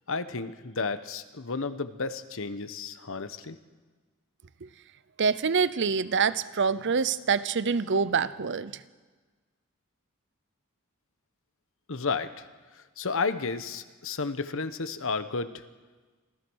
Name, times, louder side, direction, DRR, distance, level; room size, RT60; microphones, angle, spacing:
voice 1, 0.1-3.6 11.9-12.4 13.0-15.6, left 4 dB, 65° left, 11 dB, 1.1 m, -32 dB
voice 2, 5.2-8.8, right 5 dB, 55° right, 15 dB, 0.7 m, -26 dB
26.5 x 15.5 x 6.4 m, 1.4 s
head